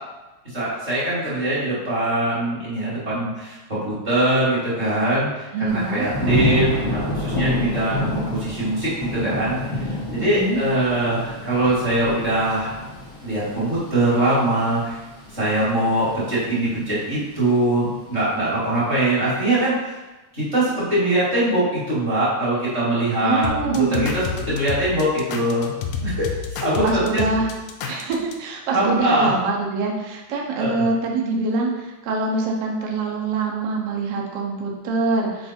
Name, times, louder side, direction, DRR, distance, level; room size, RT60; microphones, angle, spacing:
voice 1, 0.4-3.6 3.8-9.6 10.1-12.8 13.2-15.0 15.3-20.0 20.3-25.7 26.0-26.3 26.5-27.2 27.8-27.9 28.7-29.3 30.6-30.9, right 1 dB, 25° right, -9 dB, 1.9 m, -22 dB
voice 2, 5.5-6.1 10.2-10.6 23.2-24.1 26.8-27.5 27.9-35.5, right 3 dB, 75° right, -1 dB, 1.4 m, -24 dB
Thunder / Rain, 5.7-16.6 17.0-17.5, left 1 dB, 20° left, 1.0 m, -28 dB
sound 1, 23.4-28.3, left 6 dB, 85° left, 1.4 m, -29 dB
4.9 x 4.5 x 4.3 m, 1.1 s
omnidirectional pair, 3.7 m